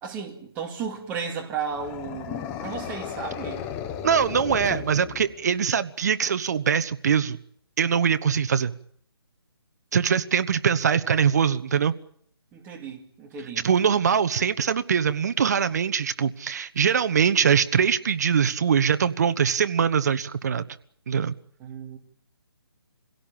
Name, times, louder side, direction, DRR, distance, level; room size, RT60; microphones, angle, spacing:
voice 1, 0.0-3.7 12.5-13.7 21.6-22.0, right 6 dB, 10° right, 2.3 m, -34 dB
sound 1, 1.7-5.6, left 9 dB, 10° left, 0.9 m, -35 dB
voice 2, 4.0-7.4 7.8-8.7 9.9-11.9 13.6-20.6 21.1-21.3, right 7 dB, 40° right, 1.1 m, -22 dB
26.0 x 17.0 x 8.9 m
hypercardioid pair, 165°, 14 cm